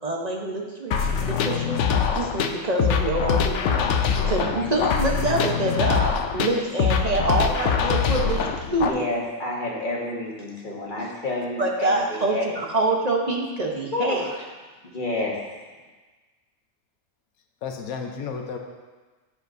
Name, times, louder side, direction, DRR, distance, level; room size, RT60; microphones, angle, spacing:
voice 1, 0.0-3.8 4.2-9.1 11.6-14.3, right 2 dB, 35° right, 0 dB, 0.8 m, -26 dB
sound 1, 0.9-8.9, left 6 dB, 65° left, 0.8 m, -23 dB
voice 2, 4.4-5.0 17.6-18.6, left 6 dB, 85° left, 3 dB, 1.3 m, -33 dB
voice 3, 8.8-12.6 13.9-14.4 14.8-15.4, left 2 dB, 35° left, -3 dB, 1.6 m, -29 dB
15.0 x 5.1 x 2.6 m, 1.3 s
omnidirectional pair, 1.5 m